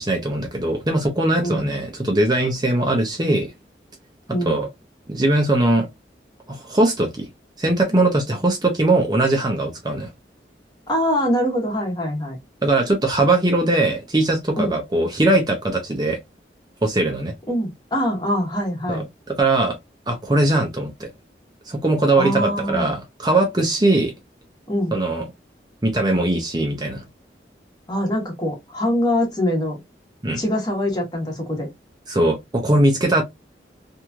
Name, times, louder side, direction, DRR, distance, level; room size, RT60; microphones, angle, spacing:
voice 1, 0.0-3.5 4.5-4.7 5.1-5.9 6.5-7.3 7.6-10.1 12.6-16.2 16.8-17.3 18.9-19.8 20.1-21.1 21.7-24.1 24.9-25.2 25.8-27.0 30.2-30.4 32.1-33.2, right 2 dB, 25° right, 0.6 m, -20 dB
voice 2, 1.4-1.8 4.3-4.6 10.9-12.4 14.5-14.7 17.5-19.1 22.1-22.9 24.7-24.9 27.9-29.8 30.4-31.7, equal, 25° left, 1.1 m, -23 dB
3.0 x 2.6 x 2.3 m
head